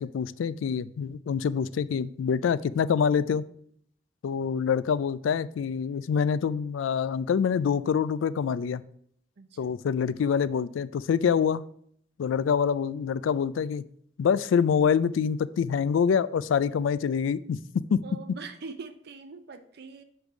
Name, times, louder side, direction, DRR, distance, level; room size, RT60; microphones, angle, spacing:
voice 1, 0.0-3.5 4.2-8.8 9.6-11.7 12.2-13.8 14.2-18.0, left 7 dB, 75° left, 17 dB, 0.3 m, -26 dB
voice 2, 9.4-9.7 18.0-20.0, right 4 dB, 55° right, 8 dB, 0.6 m, -43 dB
8.1 x 3.4 x 5.9 m, 0.66 s
head